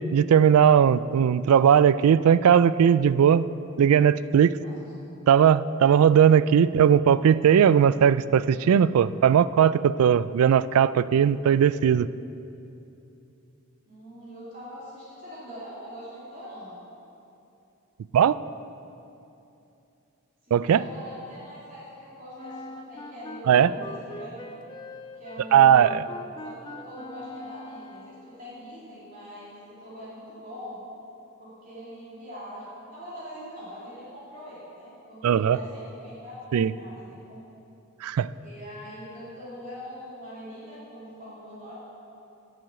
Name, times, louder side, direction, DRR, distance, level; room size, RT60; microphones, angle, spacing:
voice 1, 0.0-3.5 3.8-4.6 5.3-12.1 18.1-18.4 20.5-20.8 23.5-23.7 25.5-26.0 35.2-35.6 36.5-36.7 38.0-38.3, right 8 dB, 80° right, 18 dB, 0.3 m, -18 dB
voice 2, 13.9-16.7 20.4-24.6 25.1-30.8 31.4-36.4 36.8-37.4 38.4-41.7, equal, 40° right, -9 dB, 3.1 m, -42 dB
Wind instrument woodwind instrument, 22.4-28.3, left 2 dB, 20° left, 0.4 m, -42 dB
10.5 x 7.7 x 7.5 m, 2.8 s
head